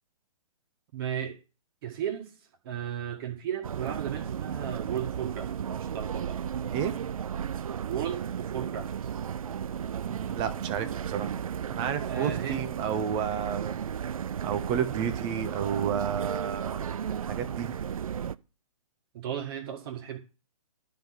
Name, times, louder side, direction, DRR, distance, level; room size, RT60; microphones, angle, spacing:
voice 1, 0.9-1.4 1.8-2.3 2.6-6.4 7.8-8.9 12.1-12.6 19.1-20.2, right 9 dB, 40° right, 1.7 m, -35 dB
sound 1, 3.6-18.4, right 8 dB, 65° right, 0.4 m, -34 dB
voice 2, 10.0-11.4 11.7-13.8 14.4-16.8 17.1-17.8, right 8 dB, 25° right, 0.9 m, -31 dB
12.0 x 4.0 x 6.3 m
figure-of-eight pair, 130°, 19 cm